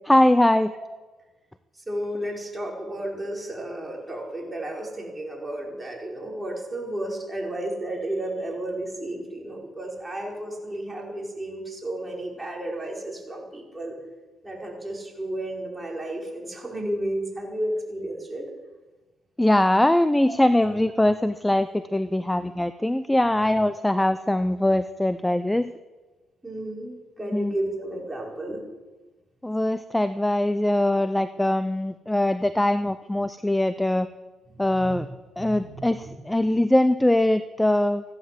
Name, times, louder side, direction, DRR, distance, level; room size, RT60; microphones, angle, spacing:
voice 1, 0.1-0.7 19.4-25.7 27.3-27.5 29.4-34.1 34.6-35.1 35.4-38.0, left 1 dB, 10° left, 13 dB, 0.6 m, -22 dB
voice 2, 1.9-13.9 14.4-18.4 26.4-28.6 34.7-35.0 35.4-36.1 36.5-36.6, right 1 dB, 15° right, -1 dB, 5.0 m, -32 dB
15.5 x 12.0 x 7.7 m, 1.2 s
cardioid pair, 90°, 0 cm